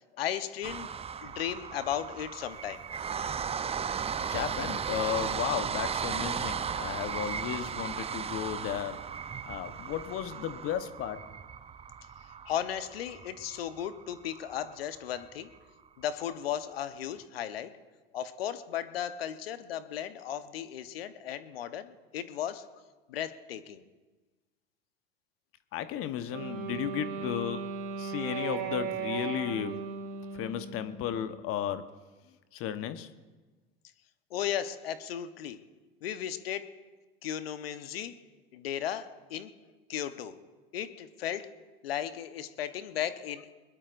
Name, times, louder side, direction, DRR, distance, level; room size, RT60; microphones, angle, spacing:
voice 1, 0.2-0.9 1.2-2.8 12.5-15.5 16.0-17.7 18.1-22.7 23.1-23.8 34.3-35.6 36.0-36.7 37.2-38.2 38.5-39.5 39.9-40.3 40.7-41.5 41.8-43.5, left 10 dB, 75° left, 11 dB, 1.0 m, -35 dB
sound 1, 0.6-14.7 15.2-15.3 15.5-15.6, right 7 dB, 20° right, 0.6 m, -36 dB
voice 2, 4.2-9.0 9.5-11.2 25.7-27.6 28.0-29.8 30.3-31.9 32.5-33.1, left 10 dB, 50° left, 11 dB, 1.1 m, -34 dB
Wind instrument woodwind instrument, 26.3-31.3, right 6 dB, 60° right, 3.6 m, -37 dB
23.0 x 20.5 x 2.6 m, 1.2 s
hypercardioid pair, 80°, 30 cm